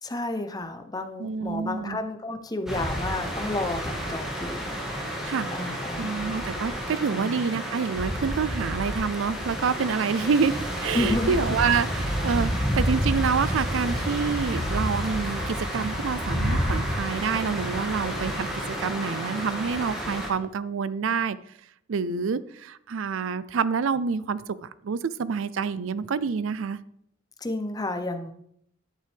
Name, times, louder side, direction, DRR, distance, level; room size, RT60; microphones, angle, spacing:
voice 1, 0.0-4.7 5.5-6.1 7.1-7.3 10.9-11.4 27.4-28.3, left 2 dB, 20° left, 7 dB, 0.7 m, -31 dB
voice 2, 1.2-2.0 5.2-21.4 21.9-26.8, right 5 dB, 80° right, 17 dB, 0.4 m, -27 dB
sound 1, 2.7-20.3, equal, ahead, 2.1 m, -30 dB
11.0 x 8.3 x 3.4 m, 0.73 s
head